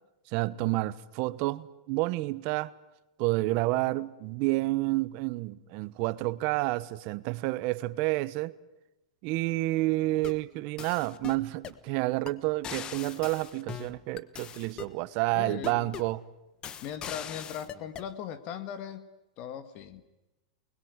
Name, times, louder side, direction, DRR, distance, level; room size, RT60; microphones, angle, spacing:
voice 1, 0.3-2.7 3.2-8.5 9.2-16.2, right 20 dB, 45° right, 1.1 m, -29 dB
sound 1, 10.0-10.4 10.8-11.8 12.3-12.4 12.6-15.0 15.6-16.2 16.6-18.1, left 8 dB, 25° left, 1.3 m, -41 dB
voice 2, 15.3-15.9 16.8-19.1 19.4-20.0, left 9 dB, 40° left, 1.8 m, -39 dB
28.5 x 21.0 x 9.6 m
supercardioid pair, 145°, 3 cm